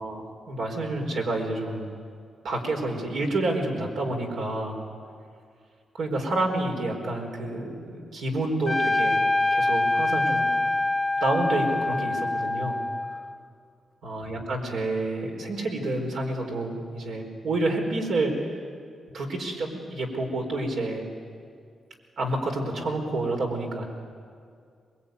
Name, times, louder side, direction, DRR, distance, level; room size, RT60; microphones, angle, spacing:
voice 1, 0.0-1.9 2.4-4.8 5.9-9.2 9.5-10.5 11.2-12.8 14.0-18.6 19.1-21.0 22.2-23.9, right 2 dB, 75° right, 1 dB, 4.5 m, -29 dB
Trumpet, 8.7-13.4, left 2 dB, 10° left, 0.9 m, -25 dB
22.5 x 21.5 x 9.4 m, 2.2 s
cardioid pair, 110°, 0 cm